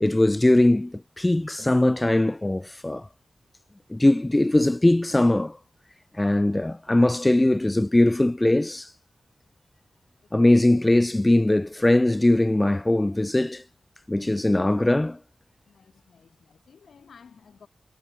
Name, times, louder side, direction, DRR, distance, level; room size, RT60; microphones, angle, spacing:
voice 1, 0.0-3.1 3.9-5.6 6.1-8.9 10.3-13.6 14.1-15.2, left 1 dB, 15° left, 0.6 m, -21 dB
voice 2, 15.7-17.7, left 6 dB, 85° left, 5.6 m, -53 dB
wide cardioid pair, 125°, 0 cm